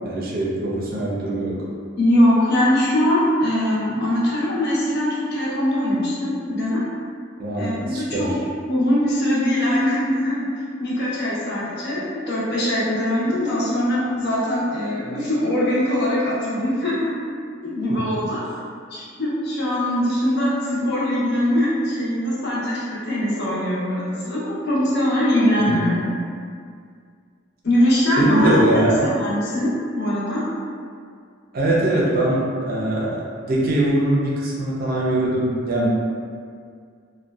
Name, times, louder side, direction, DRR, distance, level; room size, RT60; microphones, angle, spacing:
voice 1, 0.0-1.7 7.4-8.4 17.9-18.3 25.6-25.9 28.2-29.1 31.5-35.9, right 1 dB, 50° right, -5 dB, 0.5 m, -22 dB
voice 2, 2.0-6.8 7.6-8.3 8.7-10.5 10.8-17.2 17.6-18.4 18.9-26.2 27.6-30.4, left 1 dB, 60° left, -7 dB, 0.6 m, -22 dB
2.6 x 2.2 x 2.2 m, 2.2 s
head